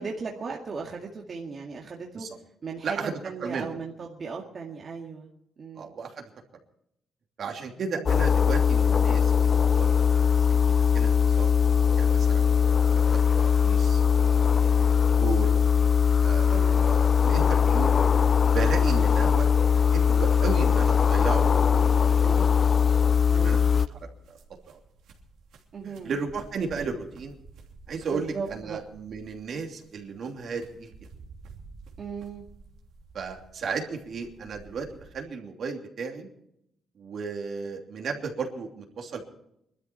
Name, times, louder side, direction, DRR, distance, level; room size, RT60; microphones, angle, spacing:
voice 1, 0.0-2.3 2.6-3.0 3.2-5.3 5.6-5.9 7.9-8.1 16.5-16.8 23.3-23.7 25.7-26.1 28.1-28.8 32.0-32.4, right 5 dB, 45° right, -1 dB, 2.1 m, -37 dB
voice 2, 2.8-3.1 3.4-3.7 5.7-6.2 7.4-11.5 12.0-14.9 15.2-15.5 16.2-17.9 18.5-22.5 23.4-24.1 24.7-24.8 25.8-27.3 27.9-30.9 33.1-36.3 37.0-39.3, right 5 dB, 65° right, 2 dB, 2.9 m, -35 dB
sound 1, 8.1-23.9, left 7 dB, 45° left, 0.5 m, -21 dB
sound 2, 21.2-35.2, right 3 dB, 85° right, 3.0 m, -51 dB
21.5 x 13.0 x 4.6 m, 0.77 s
cardioid pair, 85°, 0 cm